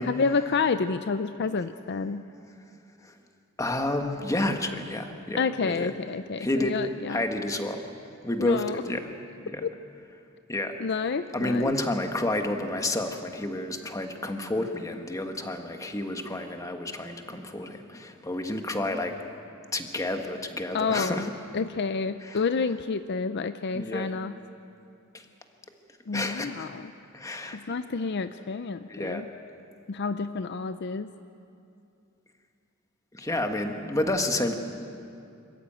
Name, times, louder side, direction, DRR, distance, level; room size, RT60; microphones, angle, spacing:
voice 1, 0.0-2.2 5.4-7.2 8.4-8.8 9.6-9.7 10.8-11.7 20.7-21.3 21.5-24.3 26.1-26.9 27.5-29.3 29.9-31.1, left 4 dB, 55° left, 11 dB, 0.5 m, -29 dB
voice 2, 3.6-5.9 6.4-6.8 7.1-7.8 8.2-9.1 9.4-9.6 10.5-10.7 11.3-19.2 19.7-21.3 22.2-22.4 23.7-24.1 25.1-25.2 26.1-26.7 27.1-27.7 28.9-29.2 33.1-34.5, left 1 dB, 15° left, 5 dB, 1.4 m, -30 dB
26.0 x 14.5 x 9.0 m, 2.6 s
head